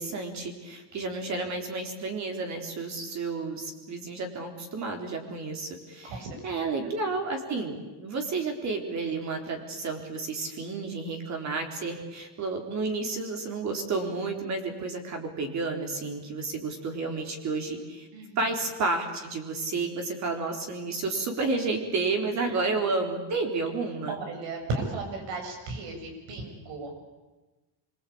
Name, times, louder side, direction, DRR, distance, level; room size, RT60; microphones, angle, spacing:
voice 1, 0.0-18.1 18.4-24.2, right 3 dB, 40° right, 4 dB, 3.9 m, -31 dB
voice 2, 6.0-6.9 18.1-18.4 22.4-22.7 24.1-27.0, right 3 dB, 80° right, 4 dB, 7.7 m, -36 dB
25.5 x 23.0 x 8.7 m, 1.2 s
cardioid pair, 180°, 44 cm